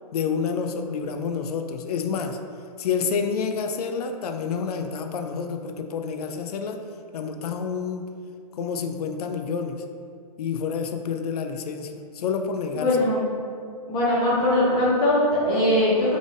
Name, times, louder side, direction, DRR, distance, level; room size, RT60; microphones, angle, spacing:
voice 1, 0.1-2.4 2.8-6.8 7.1-8.1 8.6-9.8 10.4-13.0, left 6 dB, 70° left, 6 dB, 0.4 m, -28 dB
voice 2, 12.7-13.2 13.9-16.2, left 1 dB, 25° left, -8 dB, 1.2 m, -21 dB
3.6 x 3.5 x 2.5 m, 2.3 s
hypercardioid pair, 145°, 20 cm